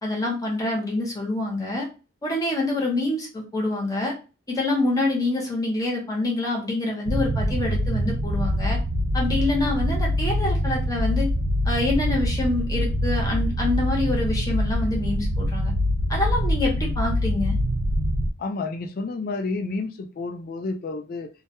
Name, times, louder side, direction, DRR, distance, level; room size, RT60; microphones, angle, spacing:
voice 1, 0.0-1.9 2.2-4.2 4.5-8.8 9.1-11.3 11.6-15.7 16.1-17.6, left 2 dB, 20° left, -1 dB, 0.7 m, -26 dB
sound 1, 7.1-18.3, equal, 65° right, 0.4 m, -24 dB
voice 2, 18.4-21.3, left 3 dB, 45° left, 5 dB, 0.3 m, -30 dB
2.2 x 2.1 x 2.9 m, 0.32 s
head